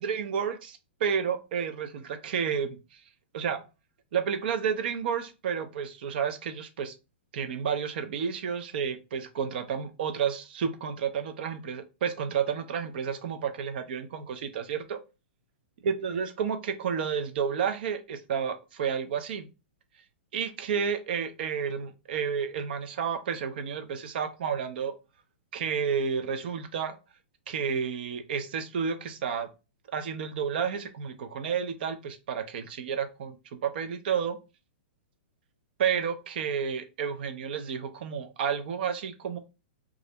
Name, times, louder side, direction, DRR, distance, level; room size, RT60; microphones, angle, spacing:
voice 1, 0.0-2.8 3.3-3.6 4.1-6.9 7.3-15.0 15.8-19.5 20.3-25.0 25.5-27.0 27.5-29.5 29.9-34.4 35.8-39.4, right 7 dB, 60° right, 0.4 m, -31 dB
2.4 x 2.0 x 2.7 m
hypercardioid pair, 150°, 6 cm